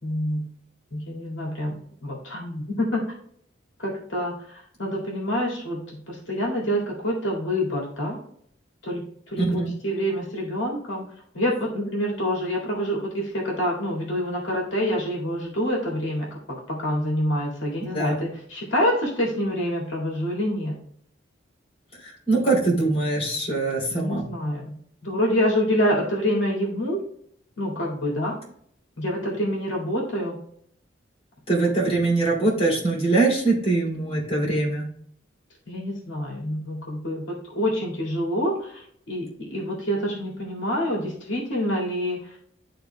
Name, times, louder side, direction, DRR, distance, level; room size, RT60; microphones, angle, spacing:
voice 1, 0.0-0.4 0.9-3.0 3.8-8.2 8.8-11.0 11.3-16.3 16.7-20.8 23.9-24.8 25.0-27.0 27.6-28.4 29.0-30.4 35.7-42.3, equal, 70° left, -2 dB, 2.1 m, -27 dB
voice 2, 9.4-9.7 17.9-18.1 22.0-24.3 31.5-34.9, right 3 dB, 30° left, -4 dB, 2.7 m, -23 dB
12.0 x 4.0 x 2.2 m, 0.65 s
head